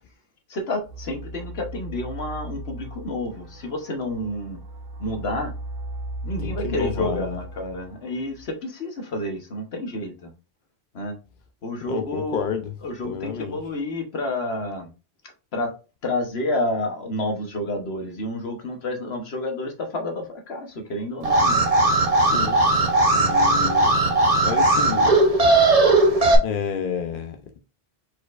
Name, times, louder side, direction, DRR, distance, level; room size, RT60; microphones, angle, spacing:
voice 1, 0.5-4.6 5.0-5.5 6.2-10.3 10.9-11.2 11.6-12.5 12.8-14.9 15.5-15.7 16.0-21.6, left 1 dB, 75° left, 1.3 m, -29 dB
sound 1, 0.9-8.4, right 1 dB, 60° right, 1.1 m, -36 dB
voice 2, 6.4-7.4 11.9-12.7 13.0-13.6 22.2-24.0 24.4-25.1 26.4-27.4, left 7 dB, 60° left, 0.8 m, -30 dB
Alarm, 21.2-26.3, right 2 dB, 40° right, 0.9 m, -18 dB
4.6 x 4.3 x 2.5 m
omnidirectional pair, 1.1 m